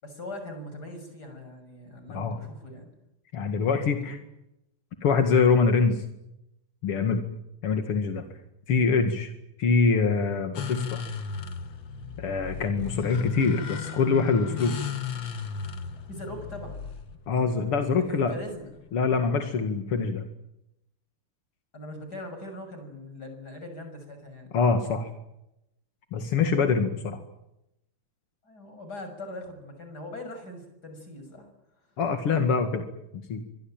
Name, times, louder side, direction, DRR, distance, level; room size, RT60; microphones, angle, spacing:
voice 1, 0.0-2.9 3.5-4.1 12.4-12.6 16.1-16.8 18.1-18.7 21.7-24.5 26.1-26.3 28.4-31.5, left 1 dB, 45° left, 7 dB, 7.4 m, -41 dB
voice 2, 3.3-4.2 5.0-6.0 6.8-7.2 7.6-8.2 8.7-9.3 9.6-11.0 12.2-14.8 17.3-18.3 18.9-20.2 24.5-25.1 26.1-27.2 32.0-32.8 33.3-33.4, left 5 dB, 90° left, 6 dB, 3.0 m, -24 dB
sound 1, 10.6-18.9, left 7 dB, 60° left, 2.5 m, -36 dB
25.5 x 22.0 x 9.0 m, 0.85 s
omnidirectional pair, 2.4 m